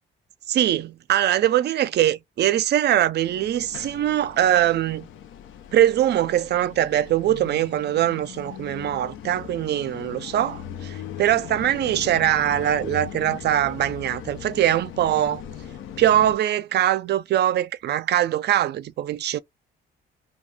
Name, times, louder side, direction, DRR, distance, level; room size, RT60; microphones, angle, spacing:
voice 1, 0.5-5.1 5.7-15.4 16.0-19.4, right 12 dB, 60° right, 0.4 m, -22 dB
sound 1, 3.2-16.4, left 10 dB, 75° left, 0.5 m, -39 dB
2.3 x 2.2 x 3.1 m
cardioid pair, 90°, 20 cm